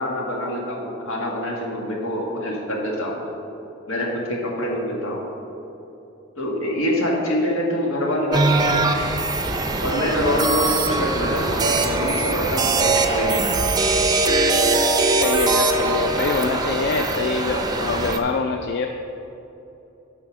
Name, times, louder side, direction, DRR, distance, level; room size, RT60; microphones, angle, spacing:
voice 1, 0.0-3.3 3.9-5.3 6.4-8.7 9.0-9.1 9.8-13.4, equal, 85° left, -1 dB, 1.6 m, -25 dB
sound 1, 8.3-18.2, right 3 dB, 20° right, 0.5 m, -21 dB
voice 2, 15.1-18.9, left 4 dB, 55° left, 5 dB, 0.4 m, -25 dB
7.6 x 5.6 x 6.1 m, 3.0 s
head